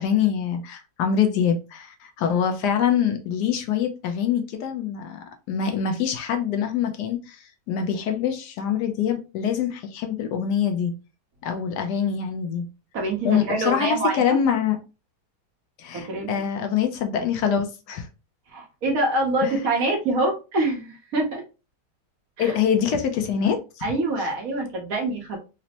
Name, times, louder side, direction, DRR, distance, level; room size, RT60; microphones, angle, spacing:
voice 1, 0.0-10.9 11.4-12.6 13.2-14.8 15.8-18.1 19.4-19.6 22.4-23.6, left 8 dB, 75° left, 1.2 m, -24 dB
voice 2, 12.9-14.4 15.9-16.5 18.5-21.4 22.4-22.5 23.8-25.4, right 2 dB, 60° right, 1.3 m, -25 dB
4.0 x 2.1 x 2.8 m
omnidirectional pair, 1.8 m